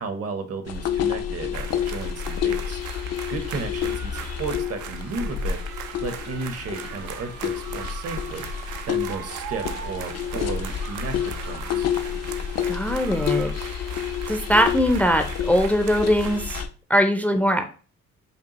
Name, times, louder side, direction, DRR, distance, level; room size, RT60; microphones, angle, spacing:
voice 1, 0.0-2.8 3.3-5.6 6.0-11.9, right 4 dB, 55° right, 8 dB, 0.9 m, -34 dB
sound 1, 0.7-16.7, left 8 dB, 60° left, 0.5 m, -29 dB
sound 2, 1.5-16.6, right 9 dB, 75° right, 0.5 m, -39 dB
voice 2, 12.7-13.9 14.3-16.6 16.9-17.7, equal, 5° left, 7 dB, 0.5 m, -21 dB
5.2 x 2.4 x 2.9 m, 0.38 s
cardioid pair, 90°, 30 cm